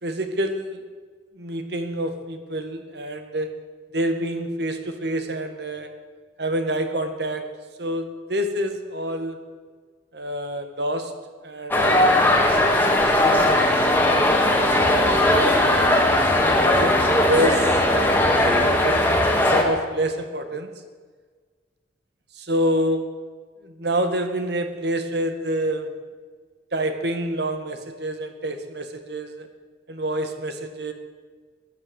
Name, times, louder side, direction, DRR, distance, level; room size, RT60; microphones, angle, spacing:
voice 1, 0.0-0.8 1.3-3.5 3.9-5.9 6.4-7.4 7.8-9.4 10.1-11.1 11.4-12.3 13.2-13.6 14.7-16.0 16.8-19.0 19.3-20.7 22.3-23.0 23.6-25.9 26.7-29.5 29.9-30.9, right 1 dB, 60° right, 7 dB, 1.7 m, -27 dB
sound 1, 11.7-19.6, left 1 dB, 10° left, 1.9 m, -18 dB
15.5 x 11.5 x 8.1 m, 1.5 s
head